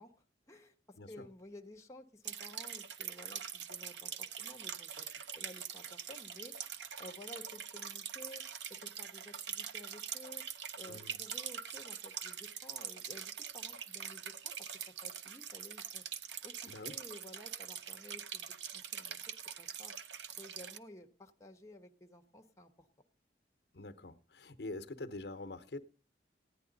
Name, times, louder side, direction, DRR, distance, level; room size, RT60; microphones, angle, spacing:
voice 1, 0.0-6.5 7.0-8.4 8.7-10.4 10.8-16.0 16.4-18.5 18.7-19.2 19.6-19.9 20.4-22.9, left 1 dB, 20° left, 3 dB, 1.1 m, -54 dB
sound 1, 2.2-20.8, right 8 dB, 85° right, 0.7 m, -44 dB
voice 2, 10.9-11.2 16.7-16.9 23.7-25.8, left 2 dB, 65° left, 9 dB, 0.9 m, -45 dB
15.5 x 10.0 x 4.0 m, 0.33 s
head